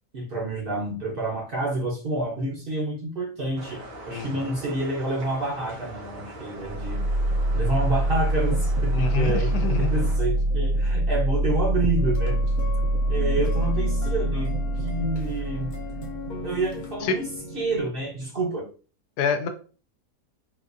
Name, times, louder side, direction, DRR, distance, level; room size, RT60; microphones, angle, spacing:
voice 1, 0.1-7.1 7.5-12.4 13.1-15.8 16.4-17.3 17.5-18.7, right 2 dB, 50° right, -2 dB, 0.6 m, -28 dB
sound 1, 3.6-10.2, right 2 dB, 90° right, 1.6 m, -41 dB
voice 2, 4.1-4.6 8.9-10.0 17.0-17.2 19.2-19.5, left 5 dB, 75° left, 6 dB, 1.1 m, -27 dB
sound 2, 6.6-18.5, right 1 dB, 70° right, 1.0 m, -25 dB
sound 3, 12.0-17.8, left 5 dB, 55° left, 0.5 m, -39 dB
3.9 x 2.4 x 2.5 m, 0.37 s
omnidirectional pair, 1.8 m